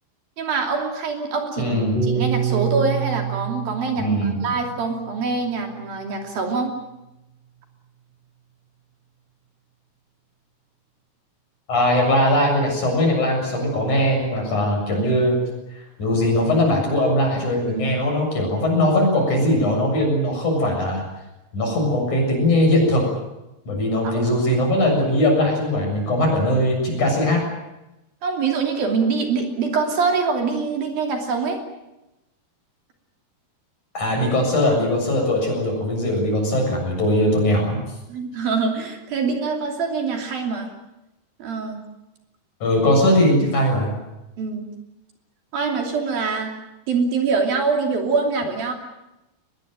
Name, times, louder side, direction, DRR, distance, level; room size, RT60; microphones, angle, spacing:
voice 1, 0.4-1.8 2.1-6.8 24.0-24.2 28.2-31.6 38.1-40.7 41.4-41.8 44.4-44.7 45.5-46.5 46.9-48.7, right 4 dB, 60° right, 3 dB, 4.5 m, -24 dB
voice 2, 1.6-2.0 4.0-4.4 11.7-15.4 16.0-21.0 21.5-23.0 23.7-27.5 33.9-37.8 42.6-43.9, left 1 dB, 45° left, 1 dB, 8.5 m, -20 dB
Piano, 2.0-6.4, right 8 dB, 25° right, 5.8 m, -27 dB
23.0 x 21.0 x 9.1 m, 0.96 s
omnidirectional pair, 4.7 m